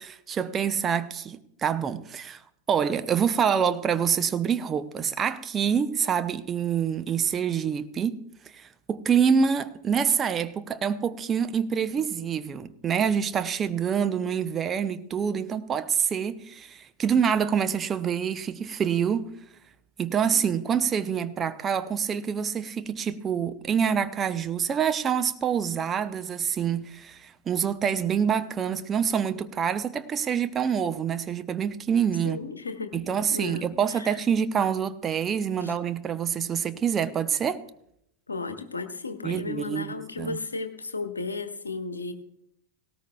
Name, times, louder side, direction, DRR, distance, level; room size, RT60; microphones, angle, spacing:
voice 1, 0.0-2.4 2.7-8.2 8.5-19.3 20.0-32.4 32.9-37.6 39.2-40.4, right 7 dB, 25° right, 0.7 m, -26 dB
voice 2, 32.2-33.0 33.3-34.2 35.6-35.7 38.3-42.1, left 3 dB, 80° left, 1.2 m, -34 dB
18.0 x 17.5 x 2.3 m
figure-of-eight pair, 90°, 0 cm